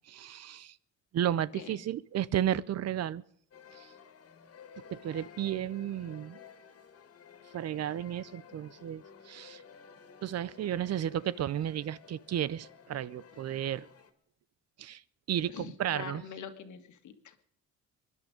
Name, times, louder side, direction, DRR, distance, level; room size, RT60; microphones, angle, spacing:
voice 1, 0.1-0.8 1.1-3.2 3.7-3.9 4.9-6.4 7.5-9.6 10.2-13.9 14.8-15.0 15.3-16.2, right 11 dB, 55° right, 0.6 m, -33 dB
sound 1, 3.5-14.1, left 7 dB, 50° left, 2.1 m, -54 dB
voice 2, 15.5-17.3, left 7 dB, 75° left, 1.8 m, -44 dB
23.0 x 11.0 x 5.1 m
cardioid pair, 90°, 30 cm